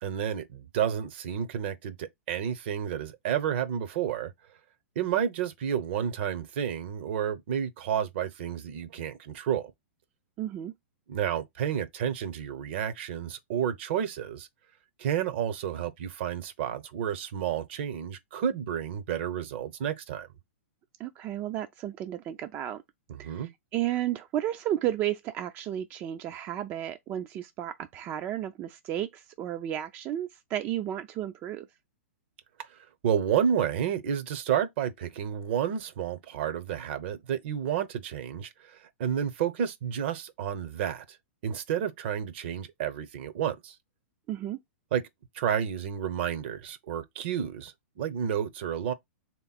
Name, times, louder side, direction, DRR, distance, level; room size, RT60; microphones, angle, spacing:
voice 1, 0.0-4.3 5.0-9.7 11.1-14.5 15.0-20.3 23.1-23.5 32.6-32.7 33.0-41.2 41.4-43.7 44.9-45.0 45.3-48.9, right 9 dB, 55° right, 0.7 m, -30 dB
voice 2, 10.4-10.7 21.0-22.8 23.2-31.7 44.3-44.6, right 12 dB, 30° right, 0.3 m, -33 dB
3.4 x 3.0 x 4.1 m
hypercardioid pair, 125°, 7 cm